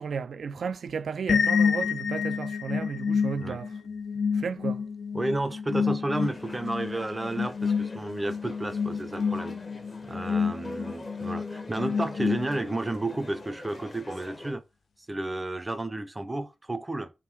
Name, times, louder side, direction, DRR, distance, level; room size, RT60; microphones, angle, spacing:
voice 1, 0.0-3.7 4.3-4.8, right 6 dB, 85° right, 0.3 m, -34 dB
sound 1, 1.3-12.9, left 6 dB, 80° left, 0.3 m, -29 dB
voice 2, 5.1-9.6 10.0-14.6 15.1-17.1, right 2 dB, 20° right, 0.4 m, -32 dB
sound 2, 6.1-14.5, left 2 dB, 50° left, 0.8 m, -44 dB
3.6 x 2.6 x 4.5 m
wide cardioid pair, 120°, 0 cm